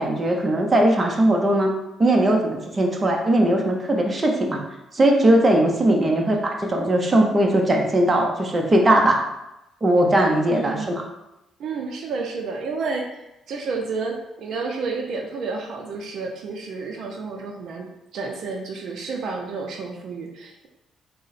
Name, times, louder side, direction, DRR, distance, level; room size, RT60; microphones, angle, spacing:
voice 1, 0.0-1.7 2.0-4.6 4.9-9.2 9.8-11.0, right 1 dB, 30° right, 1 dB, 0.6 m, -19 dB
voice 2, 5.8-6.2 10.5-11.1 11.6-20.7, right 4 dB, 70° right, 2 dB, 0.5 m, -31 dB
3.7 x 2.1 x 4.0 m, 0.90 s
cardioid pair, 90°, 0 cm